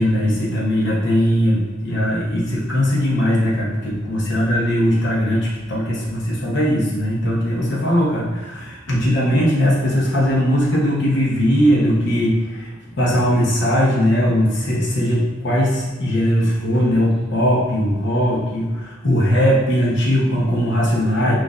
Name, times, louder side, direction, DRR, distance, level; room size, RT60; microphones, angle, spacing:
voice 1, 0.0-21.3, equal, 60° left, -6 dB, 0.8 m, -19 dB
6.0 x 2.5 x 2.4 m, 1.2 s
head